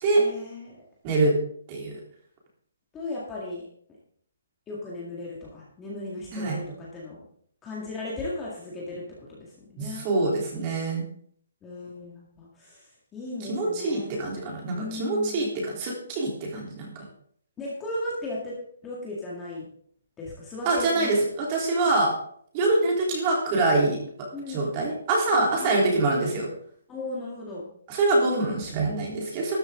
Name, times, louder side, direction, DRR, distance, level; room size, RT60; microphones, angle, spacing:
voice 1, 0.2-0.8 2.9-3.6 4.7-7.2 7.6-9.0 9.4-10.1 11.6-14.2 14.7-15.8 17.6-18.5 18.8-19.6 20.2-21.3 24.3-24.8 25.3-25.8 26.9-27.7, left 2 dB, 10° left, -6 dB, 2.0 m, -36 dB
voice 2, 1.0-1.3 1.7-2.0 6.3-6.6 9.8-11.0 13.4-17.1 20.7-22.1 22.5-26.5 27.9-29.6, right 2 dB, 20° right, -2 dB, 3.4 m, -25 dB
13.0 x 11.5 x 3.8 m, 0.62 s
hypercardioid pair, 175°, 0 cm